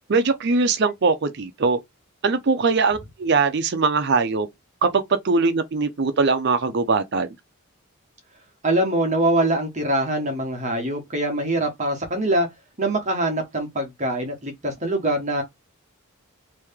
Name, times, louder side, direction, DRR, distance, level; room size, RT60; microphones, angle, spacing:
voice 1, 0.1-1.8 2.2-4.5 4.8-7.3, right 4 dB, 50° right, 0.5 m, -21 dB
voice 2, 8.6-12.5 12.8-15.4, right 1 dB, 35° right, 1.1 m, -23 dB
3.1 x 2.8 x 3.5 m
head